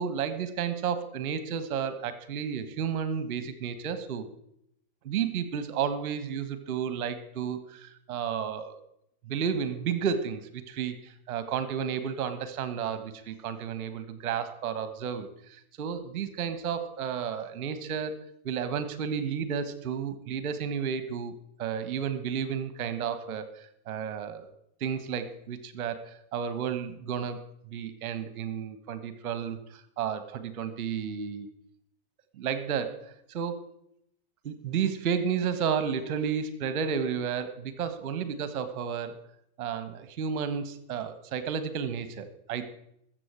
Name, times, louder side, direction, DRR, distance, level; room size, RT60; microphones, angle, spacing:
voice 1, 0.0-4.3 5.0-8.8 9.2-18.1 18.4-21.3 21.6-24.5 24.8-27.4 27.7-31.5 32.4-33.7 34.4-39.1 39.6-42.7, right 7 dB, 40° right, 12 dB, 1.6 m, -32 dB
21.0 x 7.9 x 4.7 m, 0.74 s
figure-of-eight pair, 90°, 0 cm